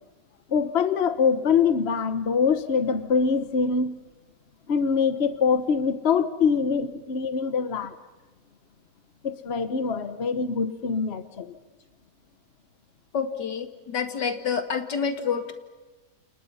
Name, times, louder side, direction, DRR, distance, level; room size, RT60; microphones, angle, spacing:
voice 1, 0.5-4.0 4.7-7.9 9.2-11.5, left 5 dB, 40° left, 11 dB, 1.3 m, -24 dB
voice 2, 13.1-15.5, left 6 dB, 85° left, 7 dB, 2.7 m, -28 dB
29.0 x 28.5 x 5.7 m, 1.2 s
omnidirectional pair, 1.8 m